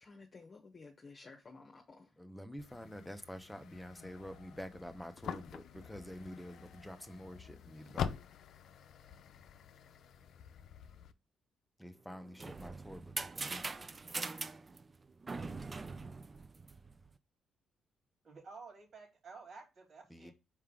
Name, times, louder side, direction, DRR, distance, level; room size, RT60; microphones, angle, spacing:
voice 1, 0.0-2.1, left 3 dB, 35° left, 1.1 m, -54 dB
voice 2, 2.2-8.1 11.8-13.7 20.1-20.3, equal, ahead, 1.0 m, -48 dB
sound 1, 2.6-11.1, left 8 dB, 70° left, 0.6 m, -46 dB
sound 2, 12.1-17.1, right 3 dB, 30° right, 0.5 m, -42 dB
voice 3, 18.2-20.3, right 4 dB, 55° right, 3.8 m, -52 dB
5.4 x 4.9 x 3.7 m
cardioid pair, 90°, 0 cm